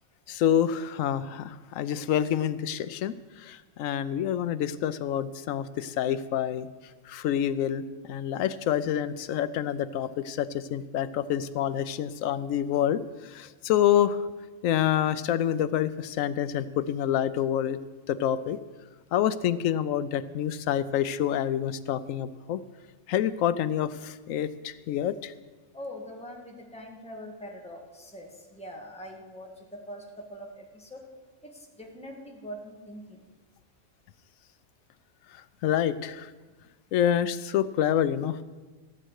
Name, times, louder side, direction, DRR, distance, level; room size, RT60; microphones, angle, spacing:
voice 1, 0.3-3.1 3.4-6.7 7.1-7.8 8.1-13.0 13.3-14.2 14.6-17.8 18.1-18.6 19.1-22.6 23.1-25.3 35.6-36.3 36.9-38.4, left 10 dB, 80° left, 13 dB, 1.0 m, -27 dB
voice 2, 25.7-30.0 30.3-31.0 31.4-31.5 31.8-33.2, equal, 5° left, 0 dB, 1.6 m, -43 dB
14.5 x 7.6 x 6.4 m, 1.4 s
omnidirectional pair, 1.4 m